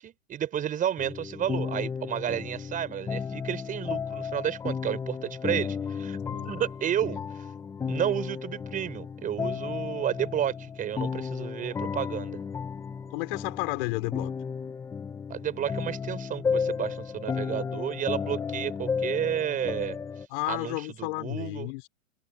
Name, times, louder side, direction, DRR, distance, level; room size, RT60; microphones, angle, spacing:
voice 1, 0.0-6.2 6.4-7.2 7.9-12.4 15.3-20.0 20.5-21.9, right 10 dB, 20° right, 6.4 m, -31 dB
sound 1, 1.0-20.3, left 6 dB, 5° left, 0.8 m, -33 dB
voice 2, 13.1-14.3 20.3-21.9, left 26 dB, 40° left, 5.3 m, -32 dB
hypercardioid pair, 140°, 41 cm